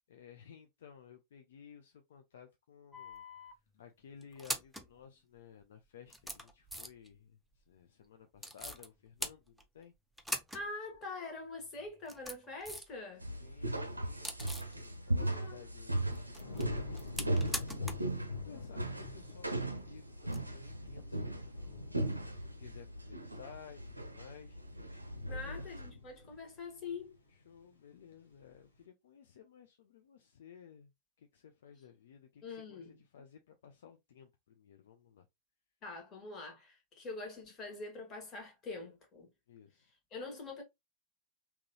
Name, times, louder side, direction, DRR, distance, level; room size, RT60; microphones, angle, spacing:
voice 1, 0.1-9.9 13.2-17.9 18.3-21.8 22.4-24.6 25.3-25.6 27.3-30.9 31.2-35.3 39.5-39.9, left 8 dB, 60° left, 0.5 m, -56 dB
sound 1, 2.9-3.5 4.2-4.9 5.6-5.7 6.1-7.1 8.4-8.9 9.2-9.8 10.2-10.7 10.9-11.0 11.9-13.0 13.3-14.8 16.2-18.1 18.4-18.5 20.2-20.4, equal, ahead, 0.6 m, -42 dB
voice 2, 10.5-13.2 15.2-15.7 25.3-27.2 32.4-33.0 35.8-39.3 40.1-40.6, left 3 dB, 30° left, 1.7 m, -44 dB
sound 2, 13.2-25.9, right 1 dB, 85° right, 0.5 m, -38 dB
sound 3, 16.4-27.7 28.1-28.5, left 3 dB, 80° left, 1.1 m, -47 dB
3.7 x 2.9 x 2.7 m
figure-of-eight pair, 90°, 0 cm